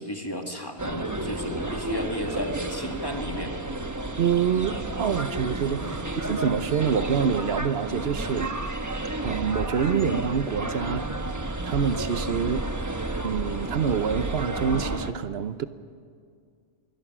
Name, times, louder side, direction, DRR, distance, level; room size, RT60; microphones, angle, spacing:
voice 1, 0.0-3.7 5.8-5.9, equal, 20° left, 2.0 m, -34 dB
sound 1, 0.8-15.1, right 2 dB, 15° right, 0.9 m, -31 dB
voice 2, 4.2-8.5 9.2-11.2 11.6-12.6 13.2-15.7, right 7 dB, 60° right, 1.0 m, -26 dB
26.0 x 21.5 x 6.1 m
omnidirectional pair, 1.2 m